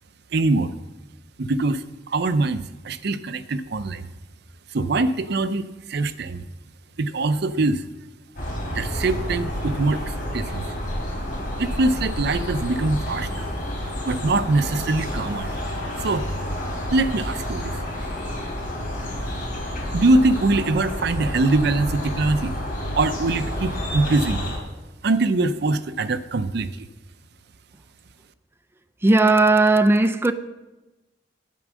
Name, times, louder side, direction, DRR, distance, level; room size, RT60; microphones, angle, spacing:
voice 1, 0.3-0.7 1.4-4.1 4.7-6.4 7.0-7.8 8.7-10.6 11.6-13.5 14.0-15.5 16.0-16.6 16.9-17.8 19.2-19.3 19.9-22.5 22.9-24.4 25.0-26.9, right 2 dB, 60° right, 0.6 m, -23 dB
sound 1, 8.4-24.6, left 1 dB, 50° left, 3.4 m, -29 dB
voice 2, 29.0-30.3, right 2 dB, 15° right, 0.4 m, -16 dB
9.3 x 9.1 x 6.2 m
head